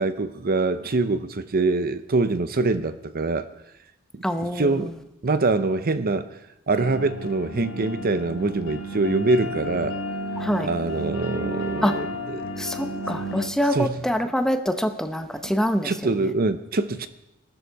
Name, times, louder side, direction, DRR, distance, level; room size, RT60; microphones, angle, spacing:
voice 1, 0.0-3.5 4.1-4.2 4.5-4.9 5.2-6.3 6.7-10.0 10.6-12.4 13.7-14.0 15.4-15.5 15.8-17.1, right 3 dB, 45° right, 12 dB, 0.7 m, -24 dB
voice 2, 4.2-4.9 10.4-10.7 11.8-11.9 12.6-15.9, equal, ahead, 7 dB, 0.7 m, -25 dB
sound 1, 6.8-13.5, equal, 75° left, 3.2 m, -32 dB
17.5 x 13.0 x 4.7 m, 0.87 s
head